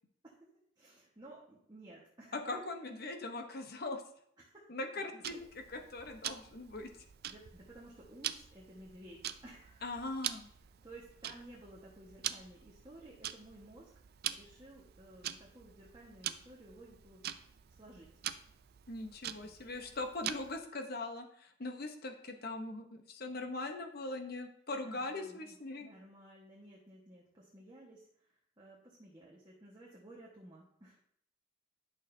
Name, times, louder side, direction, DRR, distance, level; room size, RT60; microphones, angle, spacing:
voice 1, 0.8-2.4 4.4-4.7 5.1-5.2 7.2-9.9 10.8-13.9 14.3-17.2 17.8-18.1 19.4-19.6 24.8-31.0, right 1 dB, 20° right, -5 dB, 1.4 m, -55 dB
voice 2, 2.3-4.0 4.7-6.9 9.8-10.4 18.9-25.9, left 2 dB, 50° left, 5 dB, 0.9 m, -41 dB
Tick-tock, 5.2-20.7, right 11 dB, 50° right, 0.4 m, -45 dB
11.0 x 6.4 x 2.7 m, 0.68 s
head